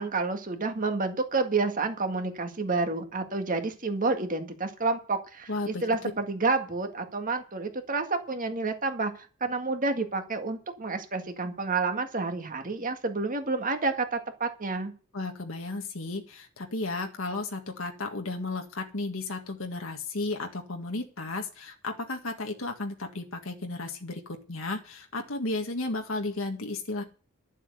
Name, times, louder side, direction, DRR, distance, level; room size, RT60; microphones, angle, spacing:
voice 1, 0.0-9.1 9.4-14.9, right 3 dB, 40° right, 6 dB, 1.9 m, -29 dB
voice 2, 5.5-5.8 15.1-27.0, left 2 dB, 70° left, 3 dB, 1.8 m, -34 dB
12.0 x 7.5 x 7.9 m, 0.37 s
head